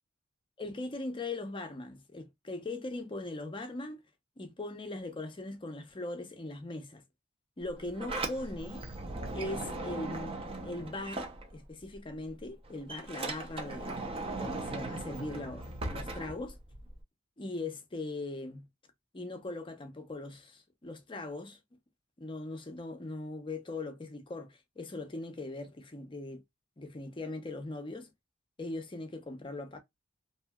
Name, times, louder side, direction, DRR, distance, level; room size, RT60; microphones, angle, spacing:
voice 1, 0.6-4.0 4.4-7.0 7.6-8.9 9.3-10.4 10.6-16.6 17.4-18.7 19.1-21.6 22.2-26.4 26.8-28.1 28.6-29.8, left 2 dB, 25° left, 0.5 m, -40 dB
Sliding door, 7.6-12.0 12.3-17.0, right 2 dB, 30° right, 0.6 m, -39 dB
2.7 x 2.7 x 2.2 m
head